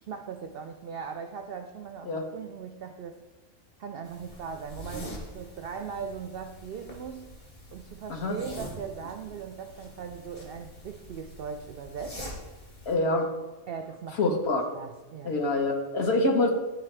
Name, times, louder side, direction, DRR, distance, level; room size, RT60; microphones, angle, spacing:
voice 1, 0.0-3.2 3.8-7.3 7.7-12.4 13.7-14.4 14.7-15.3, right 6 dB, 70° right, 5 dB, 0.5 m, -39 dB
sound 1, 4.0-12.9, equal, 35° left, 1.4 m, -44 dB
voice 2, 12.9-13.3 14.2-14.6 15.2-16.5, left 2 dB, 55° left, 2 dB, 1.1 m, -25 dB
11.0 x 4.0 x 3.3 m, 1.2 s
omnidirectional pair, 1.5 m